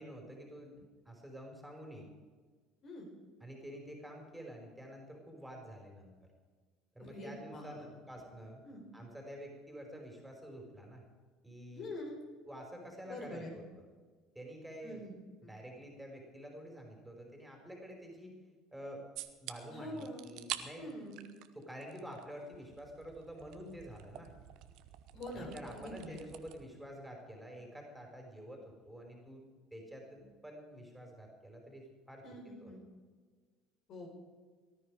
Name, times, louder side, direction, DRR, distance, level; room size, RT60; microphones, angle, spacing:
voice 1, 0.0-2.1 3.4-6.1 6.9-8.6 8.9-11.0 11.4-11.9 12.4-13.6 14.3-15.0 15.4-18.3 18.7-19.0 19.4-20.9 21.5-24.3 25.3-29.4 29.7-32.2 32.6-32.7, equal, 5° right, 1 dB, 4.7 m, -48 dB
voice 2, 7.1-7.8 8.6-8.8 11.7-12.2 13.1-13.5 14.8-15.1 19.7-20.2 20.8-21.2 25.1-26.2 32.2-32.8 33.9-34.1, left 1 dB, 50° left, 1 dB, 4.9 m, -45 dB
sound 1, 19.2-19.5 20.0-20.6 20.9-22.2 22.5-26.6, right 14 dB, 60° right, 1.0 m, -47 dB
18.5 x 13.0 x 4.9 m, 1.5 s
hypercardioid pair, 70°, 0 cm